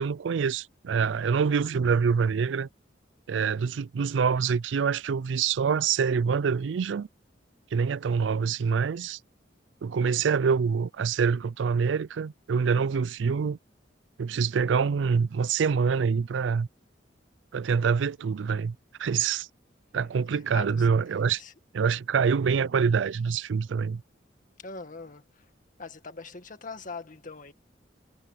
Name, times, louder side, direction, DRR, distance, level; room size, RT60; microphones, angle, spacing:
voice 1, 0.0-2.7 3.3-7.1 7.7-9.2 9.8-13.6 14.2-16.7 17.5-19.5 19.9-21.4 21.7-24.0, right 6 dB, 85° right, 0.4 m, -25 dB
voice 2, 19.9-20.9 21.4-21.5 24.6-25.5 25.8-27.5, left 4 dB, 45° left, 2.0 m, -42 dB
head